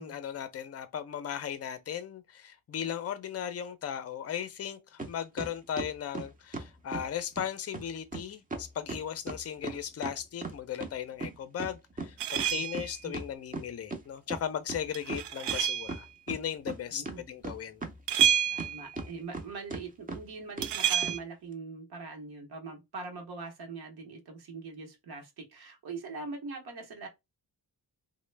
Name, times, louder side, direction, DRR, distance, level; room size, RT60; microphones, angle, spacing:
voice 1, 0.0-17.8, left 9 dB, 40° left, 0.5 m, -37 dB
sound 1, 5.0-5.1 5.4-7.1 7.4-7.5 7.7-7.9 8.1-8.2 8.5-10.9 11.2-14.0 14.3-14.4 14.7-15.6 15.9-16.8 17.1-18.7 19.0-19.4 19.7-19.8 20.1-20.2 20.6-20.7 21.0-21.2, right 3 dB, 20° right, 0.5 m, -37 dB
sound 2, 12.2-13.0 14.9-16.0 18.1-18.9 20.6-21.2, right 10 dB, 85° right, 0.5 m, -28 dB
voice 2, 16.9-17.2 18.5-27.1, right 4 dB, 70° right, 0.9 m, -42 dB
3.0 x 2.1 x 3.2 m
wide cardioid pair, 130°, 40 cm